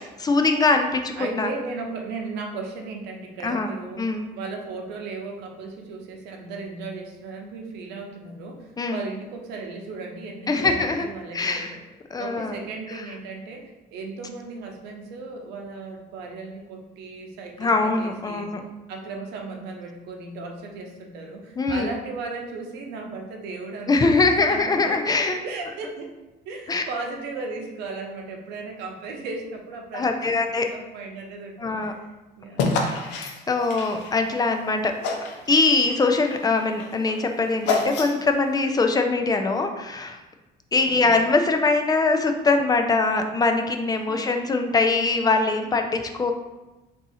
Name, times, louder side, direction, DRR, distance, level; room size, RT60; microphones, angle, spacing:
voice 1, 0.2-1.5 3.4-4.3 8.8-9.0 10.5-11.1 11.3-11.7 12.1-12.6 17.6-18.6 21.6-21.9 23.9-25.4 26.7-26.8 29.9-30.7 31.6-31.9 33.1-34.9 35.5-40.2 40.7-46.3, left 3 dB, 25° left, 5 dB, 0.4 m, -22 dB
voice 2, 1.2-11.8 12.2-18.5 18.9-26.1 26.5-32.8 40.7-41.2 43.9-44.2, right 3 dB, 90° right, 2 dB, 0.7 m, -36 dB
sound 1, 32.6-34.6 35.0-35.5 35.8-38.4, left 3 dB, 90° left, 0.6 m, -28 dB
3.6 x 2.7 x 4.1 m, 1.1 s
cardioid pair, 110°, 17 cm